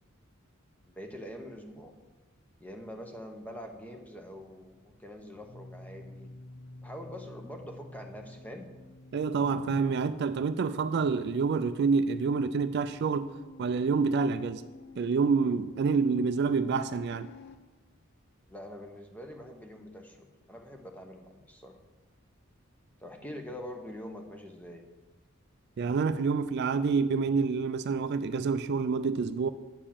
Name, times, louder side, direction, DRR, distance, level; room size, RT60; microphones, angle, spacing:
voice 1, 0.8-1.9 2.6-6.3 6.8-8.7 18.5-21.8 23.0-24.9, equal, 5° left, 0.9 m, -44 dB
sound 1, 4.7-17.6, left 2 dB, 55° left, 0.7 m, -50 dB
voice 2, 9.1-13.3 13.6-14.6 15.0-17.3 25.8-29.5, right 5 dB, 55° right, 0.3 m, -27 dB
8.6 x 5.0 x 7.1 m
head